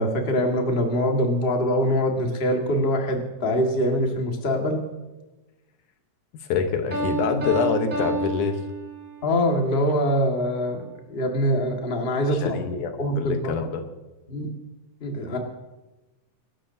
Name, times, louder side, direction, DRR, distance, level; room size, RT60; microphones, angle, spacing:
voice 1, 0.0-4.8 9.2-10.8 11.1-12.6 13.0-13.6 14.3-14.5 15.0-15.4, equal, 25° left, 2 dB, 1.5 m, -23 dB
voice 2, 6.4-8.6 12.4-13.8, left 6 dB, 85° left, 6 dB, 2.7 m, -26 dB
Piano, 6.9-9.4, right 3 dB, 15° right, 3.1 m, -29 dB
25.5 x 12.5 x 2.8 m, 1.1 s
omnidirectional pair, 3.5 m